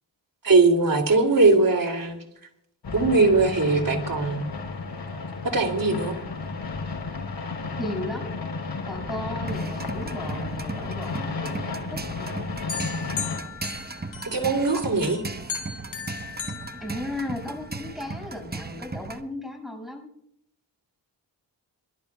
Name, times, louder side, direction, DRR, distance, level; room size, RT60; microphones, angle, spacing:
voice 1, 0.4-2.2 2.9-4.5 5.4-6.2 14.2-15.2, right 3 dB, 50° right, 5 dB, 2.9 m, -20 dB
sound 1, 2.8-13.4, left 4 dB, 70° left, 4.1 m, -33 dB
voice 2, 7.8-8.3 8.9-12.6 16.8-20.1, left 1 dB, ahead, 2 dB, 6.5 m, -35 dB
sound 2, 9.5-19.2, right 3 dB, 20° right, 1.0 m, -37 dB
sound 3, 12.7-14.6 15.0-17.6, left 7 dB, 85° left, 2.6 m, -36 dB
26.5 x 12.5 x 2.4 m, 0.71 s
supercardioid pair, 40°, 44 cm